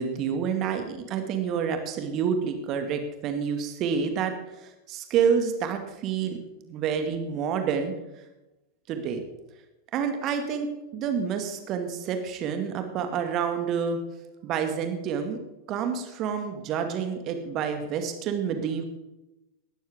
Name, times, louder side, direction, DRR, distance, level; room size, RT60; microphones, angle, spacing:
voice 1, 0.0-6.4 6.7-7.9 8.9-9.2 9.9-10.7 10.9-14.0 14.4-15.4 15.7-18.8, right 7 dB, 35° right, 6 dB, 2.1 m, -28 dB
18.5 x 13.0 x 3.7 m, 0.96 s
figure-of-eight pair, 90°, 0 cm